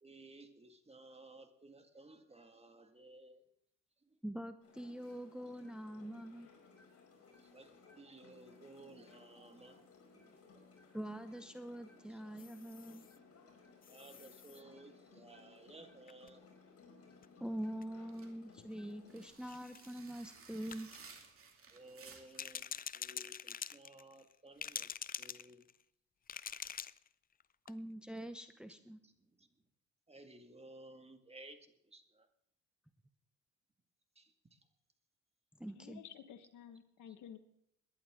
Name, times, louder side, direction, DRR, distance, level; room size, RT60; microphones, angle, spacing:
voice 1, 0.0-3.4 4.1-4.2 5.4-5.6 7.4-9.9 10.1-10.9 11.2-11.5 12.1-12.2 13.9-16.5 19.4-19.6 19.9-20.0 21.7-25.7 29.0-29.1 29.4-29.5 30.1-32.3 34.2-34.6 37.1-37.2, right 2 dB, 20° right, 6 dB, 1.9 m, -57 dB
voice 2, 4.2-6.5 10.9-13.1 17.4-20.9 27.7-29.0 35.6-36.0, right 1 dB, 5° right, 8 dB, 0.9 m, -44 dB
sound 1, 4.6-19.3, left 4 dB, 50° left, 5.1 m, -61 dB
sound 2, 12.4-13.2 13.8-14.6 16.1-16.3 17.2-17.3 17.6-17.8 18.6-18.7 19.4-19.9 20.7-21.1 22.3-24.3 24.6-25.8 26.3-27.1 27.4-27.5 27.7-27.8, left 8 dB, 30° left, 0.5 m, -46 dB
sound 3, 18.0-22.5, right 5 dB, 45° right, 2.4 m, -57 dB
voice 3, 35.7-37.4, left 9 dB, 80° left, 9 dB, 1.5 m, -52 dB
21.5 x 11.0 x 3.7 m, 0.75 s
cardioid pair, 90°, 30 cm